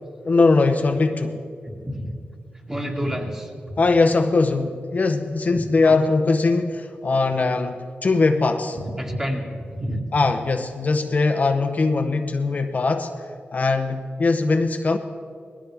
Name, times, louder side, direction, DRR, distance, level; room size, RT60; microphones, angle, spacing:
voice 1, 0.2-1.4 3.8-8.8 10.1-13.1 13.5-15.0, left 3 dB, 45° left, 6 dB, 0.8 m, -20 dB
voice 2, 1.7-2.1 2.7-3.8 5.5-6.0 8.9-10.0, equal, 15° right, 0 dB, 2.1 m, -29 dB
19.5 x 15.0 x 3.5 m, 2.2 s
cardioid pair, 75°, 4 cm